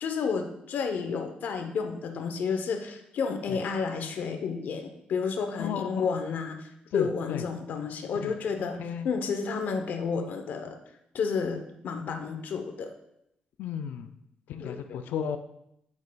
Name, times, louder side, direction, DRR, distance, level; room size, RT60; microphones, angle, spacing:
voice 1, 0.0-8.8 9.0-10.7 11.1-12.9 14.6-15.0, left 5 dB, 70° left, 6 dB, 0.8 m, -31 dB
voice 2, 5.6-6.0 6.9-7.4 8.2-8.3 8.8-9.1 13.6-14.1 14.5-15.4, left 8 dB, 90° left, 8 dB, 0.4 m, -33 dB
8.4 x 6.3 x 2.3 m, 0.80 s
cardioid pair, 125°, 3 cm